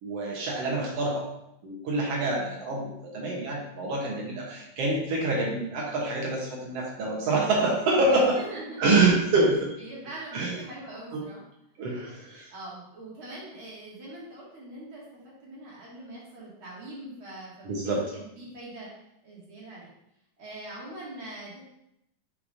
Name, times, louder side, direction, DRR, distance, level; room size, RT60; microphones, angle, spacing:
voice 1, 0.0-1.2 1.6-8.4 8.8-9.7 10.3-10.6 11.1-11.2 11.8-12.5 17.6-18.0, right 2 dB, 65° right, -2 dB, 1.7 m, -26 dB
voice 2, 8.1-9.0 9.8-11.4 12.5-18.9 19.2-19.9 20.4-21.6, right 1 dB, 40° right, -7 dB, 2.5 m, -42 dB
6.5 x 6.4 x 2.6 m, 0.82 s
omnidirectional pair, 4.0 m